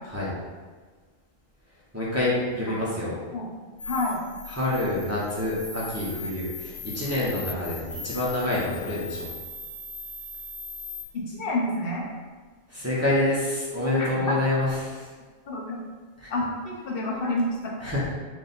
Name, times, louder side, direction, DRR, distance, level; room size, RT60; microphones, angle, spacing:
voice 1, 1.9-3.1 4.5-9.3 12.7-15.1 16.2-16.3 17.8-18.1, left 1 dB, 15° right, -8 dB, 0.6 m, -27 dB
sound 1, 3.8-11.0, left 4 dB, 70° left, 0.4 m, -39 dB
voice 2, 3.9-4.2 11.1-12.1 14.0-14.3 15.5-15.8 16.3-17.7, left 1 dB, 55° left, -3 dB, 0.8 m, -28 dB
3.4 x 2.6 x 4.1 m, 1.4 s
omnidirectional pair, 1.4 m